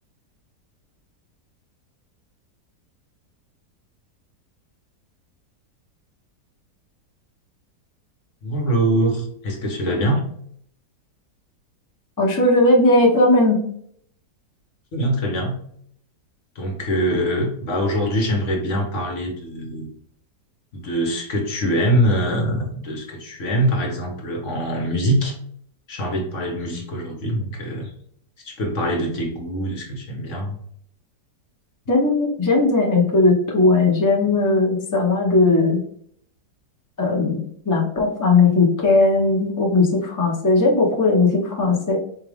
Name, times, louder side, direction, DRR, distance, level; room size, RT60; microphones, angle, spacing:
voice 1, 8.4-10.2 14.9-15.6 16.6-19.9 20.7-25.4 25.9-27.9 28.4-30.6, equal, 50° left, 2 dB, 1.1 m, -23 dB
voice 2, 12.2-13.6 31.9-35.8 37.0-42.0, left 2 dB, 25° left, -2 dB, 0.4 m, -18 dB
4.4 x 2.4 x 3.3 m, 0.65 s
omnidirectional pair, 1.8 m